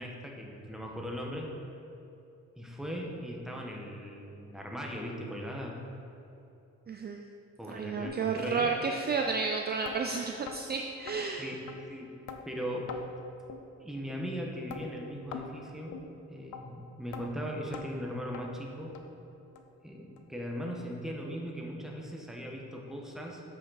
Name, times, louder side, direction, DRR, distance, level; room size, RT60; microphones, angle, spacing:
voice 1, 0.0-1.5 2.6-5.8 7.6-8.7 11.4-12.2 12.5-13.0 13.8-16.0 16.3-19.0 19.8-23.4, equal, ahead, -1 dB, 1.2 m, -39 dB
voice 2, 6.9-7.2 7.7-11.4, right 5 dB, 35° right, 3 dB, 0.5 m, -31 dB
sound 1, 8.0-8.2 8.6-8.8 9.3-9.4 9.9-10.0 10.5-10.6 11.1-11.2 11.7-11.8 12.3-12.4 12.9-13.0 13.5-13.6 14.1-14.2 14.7-14.8 15.3-15.5 15.9-16.1 16.5-16.6 17.1-17.3 17.7-17.9 18.3-18.5 18.9-19.0 19.6-19.7 20.2-20.3 20.8-20.9, left 8 dB, 80° left, 0.7 m, -42 dB
7.4 x 6.5 x 4.2 m, 2.9 s
cardioid pair, 90°, 30 cm